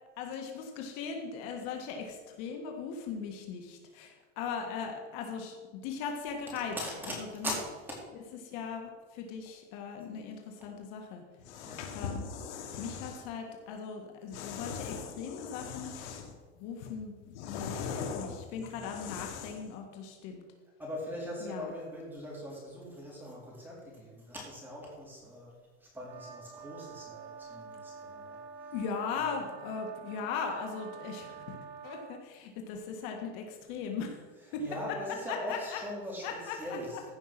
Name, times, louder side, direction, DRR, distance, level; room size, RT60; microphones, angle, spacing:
voice 1, 0.2-6.8 7.0-7.6 8.4-11.2 11.9-12.3 12.8-15.9 16.6-20.4 21.4-21.7 28.7-31.6 31.8-34.2 34.5-35.0 35.3-35.8 36.2-36.8, left 6 dB, 60° left, 3 dB, 1.8 m, -39 dB
voice 2, 6.8-7.1 7.4-8.0 11.7-12.2 20.8-25.5 25.8-28.4 29.5-29.7 34.4-37.1, left 1 dB, 5° right, -3 dB, 3.6 m, -41 dB
sound 1, 11.4-13.3 14.3-16.4 16.8-19.7, left 6 dB, 80° left, 1.7 m, -40 dB
sound 2, 26.0-32.2, right 6 dB, 30° right, 1.6 m, -47 dB
15.0 x 5.6 x 6.0 m, 1.3 s
supercardioid pair, 150°, 34 cm